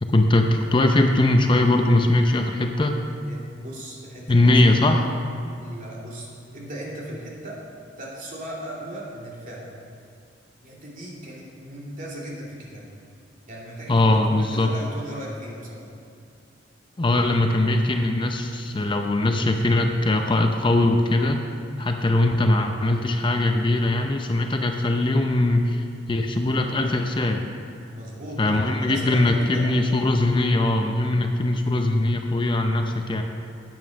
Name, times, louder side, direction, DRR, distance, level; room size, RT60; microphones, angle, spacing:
voice 1, 0.0-3.0 4.3-5.1 13.9-14.7 17.0-21.4 21.8-27.4 28.4-33.2, left 2 dB, 25° left, 4 dB, 0.6 m, -21 dB
voice 2, 3.1-4.9 5.6-7.6 8.0-9.7 10.6-12.9 13.5-14.2 14.5-15.9 27.9-29.7, right 1 dB, 45° right, -4 dB, 2.7 m, -37 dB
9.2 x 9.0 x 6.3 m, 2.5 s
head